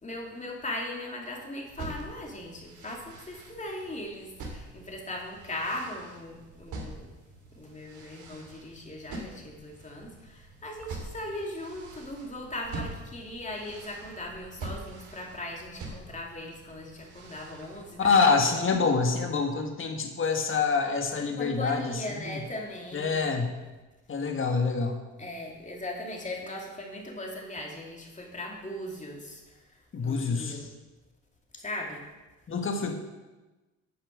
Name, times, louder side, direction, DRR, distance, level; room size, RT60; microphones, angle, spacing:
voice 1, 0.0-7.1 7.5-18.6 21.4-23.3 25.2-30.7 31.5-32.0, left 1 dB, 25° left, 0 dB, 2.8 m, -39 dB
sound 1, 1.7-17.9, right 2 dB, 75° right, 2.5 m, -44 dB
voice 2, 18.0-22.4 22.9-23.5 24.1-25.0 29.9-30.6 32.5-33.0, left 4 dB, 40° left, 4 dB, 1.7 m, -26 dB
9.7 x 6.9 x 6.7 m, 1.1 s
cardioid pair, 90°, 30 cm